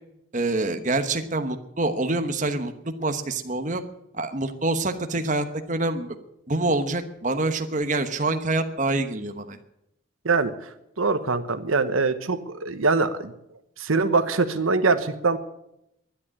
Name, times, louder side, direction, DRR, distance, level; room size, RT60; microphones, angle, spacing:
voice 1, 0.3-2.7 3.0-3.8 4.1-6.1 6.5-9.6, right 2 dB, 35° right, 7 dB, 1.1 m, -26 dB
voice 2, 10.2-10.7 11.0-13.3 13.8-15.4, right 4 dB, 85° right, 10 dB, 1.1 m, -23 dB
11.5 x 10.0 x 9.9 m, 0.82 s
head